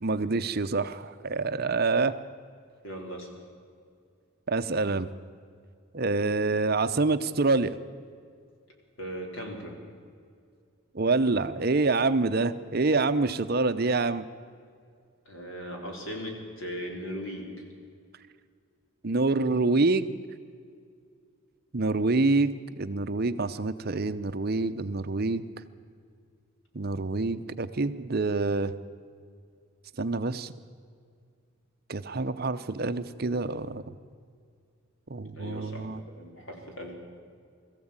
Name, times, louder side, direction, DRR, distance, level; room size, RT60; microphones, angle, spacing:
voice 1, 0.0-2.1 4.5-5.1 5.9-7.7 10.9-14.2 19.0-20.2 21.7-25.4 26.7-28.7 30.0-30.5 31.9-33.8 35.1-36.0, right 3 dB, 45° right, 11 dB, 0.7 m, -26 dB
voice 2, 2.8-3.3 9.0-9.8 15.3-17.6 35.4-35.9 36.1-36.9, equal, 65° left, 1 dB, 4.5 m, -38 dB
21.5 x 14.5 x 8.8 m, 2.2 s
head